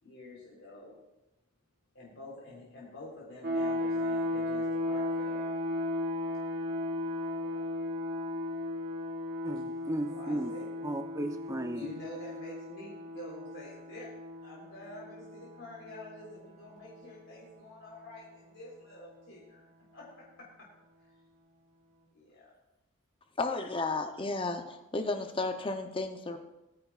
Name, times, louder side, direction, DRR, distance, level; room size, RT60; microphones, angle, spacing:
voice 1, 0.0-0.9 1.9-5.5 7.3-7.6 10.1-10.7 11.7-14.1 14.4-19.6 19.9-20.5 22.1-22.5 26.2-26.4, left 2 dB, 65° left, -5 dB, 3.7 m, -48 dB
sound 1, 3.4-17.2, left 1 dB, 50° right, 1.8 m, -36 dB
voice 2, 9.4-10.5 10.8-11.8, right 1 dB, 15° right, 7 dB, 0.6 m, -35 dB
voice 3, 23.4-26.4, left 3 dB, 25° left, 6 dB, 0.7 m, -33 dB
21.0 x 9.2 x 2.4 m, 0.96 s
head